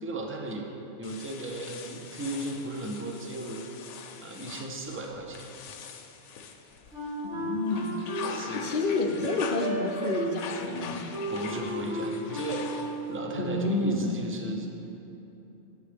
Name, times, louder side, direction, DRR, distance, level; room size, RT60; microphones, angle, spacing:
voice 1, 0.0-0.7 1.0-3.6 4.2-5.5 8.2-8.7 11.3-14.8, right 1 dB, 20° right, 1 dB, 0.4 m, -36 dB
sound 1, 1.0-7.2 7.6-13.2, left 6 dB, 85° left, 0.9 m, -43 dB
Wind instrument woodwind instrument, 6.9-13.2, right 1 dB, 85° right, 1.7 m, -35 dB
voice 2, 7.2-7.9 8.6-11.0 13.4-14.1, left 2 dB, 55° left, -2 dB, 0.7 m, -29 dB
8.2 x 7.0 x 3.4 m, 3.0 s
omnidirectional pair, 1.2 m